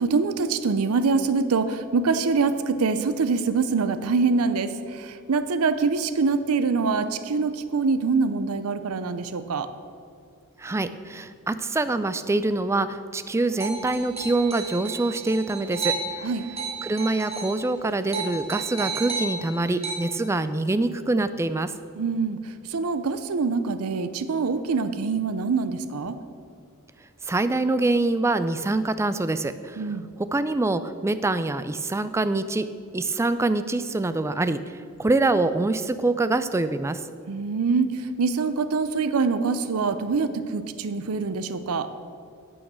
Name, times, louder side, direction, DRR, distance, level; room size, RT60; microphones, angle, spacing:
voice 1, 0.0-9.7 16.2-16.5 22.0-22.4 22.7-26.2 29.8-30.1 37.3-41.9, right 4 dB, 80° right, 12 dB, 0.6 m, -24 dB
voice 2, 10.6-15.9 16.8-21.7 27.3-29.8 30.3-32.7 32.9-34.6 35.0-37.0, right 2 dB, 15° right, 12 dB, 0.3 m, -25 dB
sound 1, 13.6-17.6 17.9-19.9, right 4 dB, 30° right, 1.6 m, -33 dB
9.1 x 6.4 x 6.1 m, 2.3 s
head